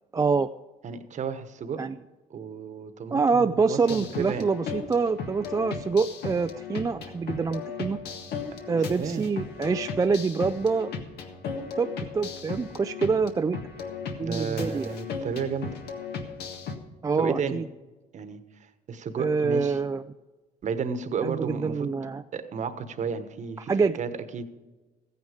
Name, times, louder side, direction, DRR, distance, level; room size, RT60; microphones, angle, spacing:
voice 1, 0.1-0.5 1.8-2.0 3.1-8.0 8.7-10.9 11.8-13.6 14.2-14.9 17.0-17.6 19.2-20.0 21.2-22.2 23.7-24.0, right 4 dB, 20° right, 8 dB, 0.4 m, -26 dB
voice 2, 0.8-1.9 2.3-4.5 9.0-9.3 14.2-15.8 17.2-17.6 18.1-19.8 20.6-21.9 22.3-23.7 24.0-24.4, right 6 dB, 45° right, 10 dB, 1.2 m, -32 dB
sound 1, 3.8-16.8, left 5 dB, 75° left, 1.7 m, -37 dB
15.0 x 9.6 x 5.0 m, 1.2 s
cardioid pair, 110°, 17 cm